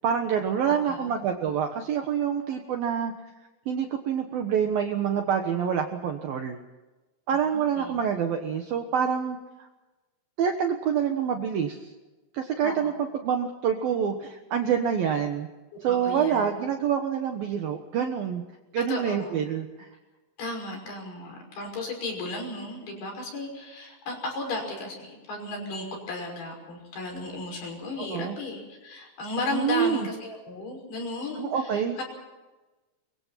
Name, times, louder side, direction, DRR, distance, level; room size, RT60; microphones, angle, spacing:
voice 1, 0.0-3.1 3.7-6.6 7.3-9.7 10.4-11.9 12.3-15.5 15.8-18.4 18.7-19.9 28.1-28.4 29.5-30.1 31.4-32.0, right 8 dB, 65° right, 5 dB, 2.4 m, -27 dB
voice 2, 0.7-1.1 7.5-8.0 12.6-12.9 15.9-16.5 18.9-19.4 20.4-32.0, left 2 dB, 50° left, 2 dB, 7.6 m, -35 dB
24.0 x 23.5 x 5.8 m, 1.1 s
omnidirectional pair, 5.7 m